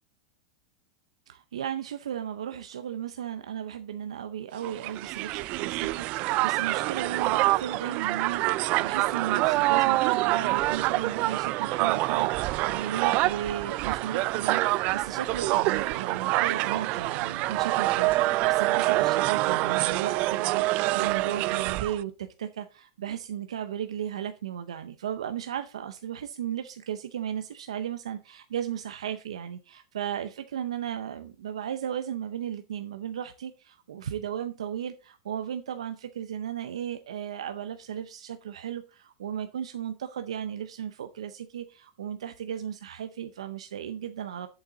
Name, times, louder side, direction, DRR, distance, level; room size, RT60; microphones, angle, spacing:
voice 1, 1.3-44.5, right 9 dB, 90° right, 0.6 m, -35 dB
Crowd, 4.6-22.0, right 19 dB, 45° right, 0.3 m, -26 dB
8.0 x 7.1 x 3.9 m
hypercardioid pair, 120°, 3 cm